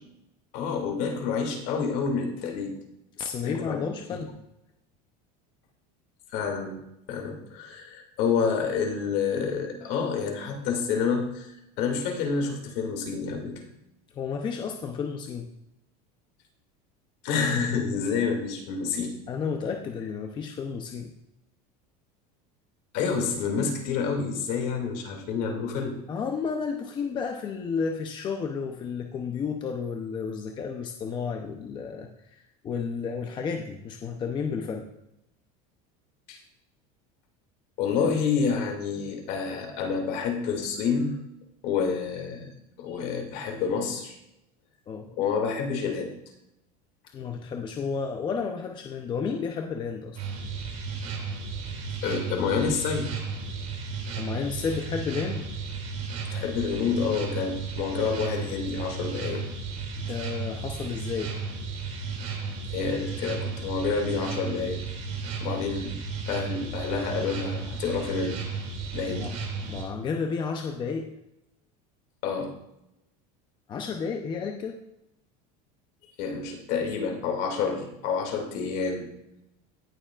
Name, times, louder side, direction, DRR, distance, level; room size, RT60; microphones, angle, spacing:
voice 1, 0.5-2.8 3.4-3.8 4.1-4.2 6.3-6.8 7.1-13.6 17.2-19.2 22.9-26.0 36.3-36.4 37.8-41.2 41.6-42.5 42.8-44.2 45.2-46.1 52.0-53.1 56.3-59.4 60.1-60.2 62.7-64.8 65.4-66.0 66.3-68.4 68.9-69.3 72.2-72.5 76.2-79.1, left 5 dB, 55° left, 3 dB, 2.4 m, -28 dB
voice 2, 3.2-4.3 14.1-15.5 19.3-21.1 26.1-34.9 44.9-45.1 47.1-50.2 54.2-55.5 60.0-61.4 69.1-69.3 69.6-71.1 73.7-74.8, left 5 dB, 25° left, 4 dB, 0.7 m, -32 dB
sound 1, 50.2-69.8, right 4 dB, 40° right, 2.6 m, -34 dB
18.0 x 6.9 x 2.4 m, 0.85 s
cardioid pair, 160°, 19 cm